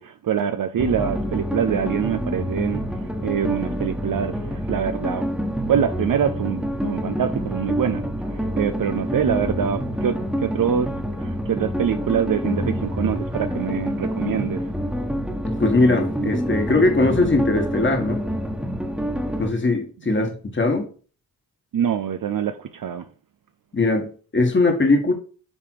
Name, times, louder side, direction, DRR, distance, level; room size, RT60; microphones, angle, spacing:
voice 1, 0.0-10.9 11.2-14.7 20.1-20.3 21.7-23.1, right 8 dB, 60° right, 0.6 m, -25 dB
sound 1, 0.8-19.5, equal, ahead, 1.4 m, -27 dB
voice 2, 15.4-18.3 19.4-20.9 23.7-25.1, left 2 dB, 30° left, 1.6 m, -20 dB
8.4 x 3.4 x 4.6 m
cardioid pair, 65°, 39 cm